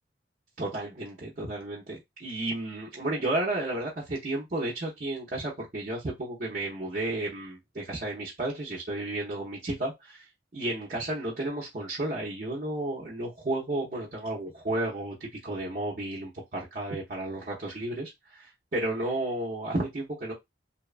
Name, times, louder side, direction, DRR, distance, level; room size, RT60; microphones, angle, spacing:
voice 1, 0.6-10.3 10.5-20.3, right 1 dB, 40° right, 0.6 m, -32 dB
2.7 x 2.2 x 2.4 m
head